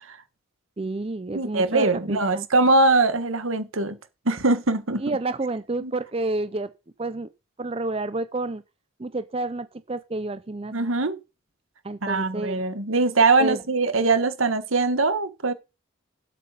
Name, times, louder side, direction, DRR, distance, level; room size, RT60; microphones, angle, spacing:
voice 1, 0.8-2.5 5.0-6.7 7.0-7.3 7.6-8.6 9.0-10.7 11.8-12.6 13.4-13.6, right 2 dB, 30° right, 0.5 m, -29 dB
voice 2, 1.3-4.0 4.2-5.2 5.8-5.9 10.7-11.2 12.0-15.5, right 3 dB, 80° right, 1.4 m, -22 dB
8.3 x 7.4 x 6.7 m
head